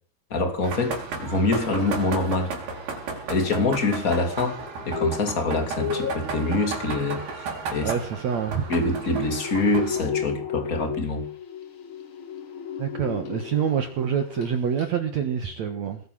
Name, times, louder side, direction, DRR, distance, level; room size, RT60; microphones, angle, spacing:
voice 1, 0.3-2.5 3.3-7.9 8.7-11.2, left 2 dB, 25° left, 2.8 m, -25 dB
sound 1, 0.6-10.0, right 4 dB, 80° right, 5.8 m, -34 dB
sound 2, 4.7-13.9 14.2-14.5 14.8-14.9, left 7 dB, 50° left, 1.7 m, -34 dB
voice 2, 7.8-8.7 12.8-16.0, right 7 dB, 55° right, 2.3 m, -26 dB
20.5 x 9.3 x 7.5 m
omnidirectional pair, 4.5 m